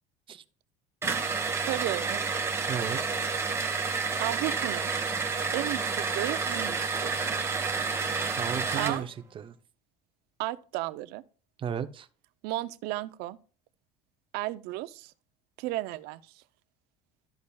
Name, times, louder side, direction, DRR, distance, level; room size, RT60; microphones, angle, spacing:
sound 1, 1.0-9.0, right 5 dB, 15° right, 1.3 m, -30 dB
voice 1, 1.7-2.3 4.2-4.9 5.5-7.2 8.8-9.1 10.4-11.2 12.4-13.4 14.3-15.1 15.6-16.4, right 17 dB, 70° right, 0.6 m, -34 dB
voice 2, 2.7-3.0 8.4-9.6 11.6-12.1, right 8 dB, 30° right, 0.7 m, -34 dB
13.0 x 5.3 x 2.3 m
cardioid pair, 125°, 17 cm